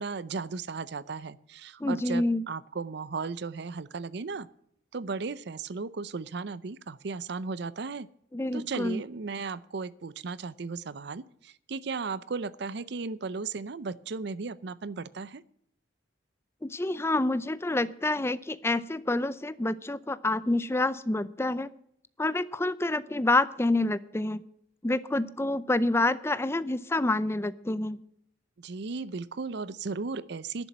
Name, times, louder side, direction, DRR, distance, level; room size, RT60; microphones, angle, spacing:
voice 1, 0.0-4.5 4.9-8.1 8.5-15.4 28.6-30.7, right 4 dB, 60° right, 18 dB, 0.6 m, -36 dB
voice 2, 1.8-2.4 8.3-9.0 16.6-21.7 22.2-24.4 24.8-28.0, left 2 dB, 15° left, 16 dB, 0.5 m, -28 dB
11.5 x 7.1 x 9.5 m, 0.70 s
head